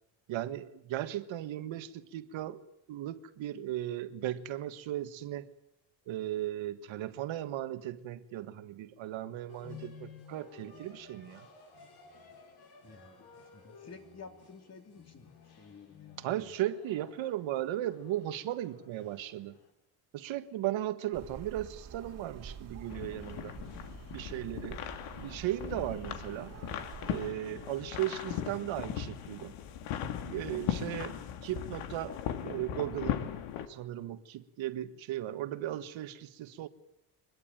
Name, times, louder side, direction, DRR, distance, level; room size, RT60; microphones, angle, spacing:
voice 1, 0.3-2.6 2.9-5.5 6.1-11.5 16.2-19.5 20.1-23.6 24.1-24.8 25.2-26.5 27.1-29.5 30.2-32.2 32.4-33.2 33.7-36.7, right 13 dB, 70° right, 1.7 m, -36 dB
sound 1, 9.5-19.7, left 5 dB, 55° left, 5.9 m, -54 dB
voice 2, 12.8-16.5, left 4 dB, 30° left, 3.3 m, -53 dB
Dog barks to other dogs by night, 21.1-27.3, right 6 dB, 30° right, 2.3 m, -48 dB
sound 2, 22.9-33.7, left 9 dB, 90° left, 2.5 m, -38 dB
23.5 x 21.5 x 9.1 m
cardioid pair, 135°, 48 cm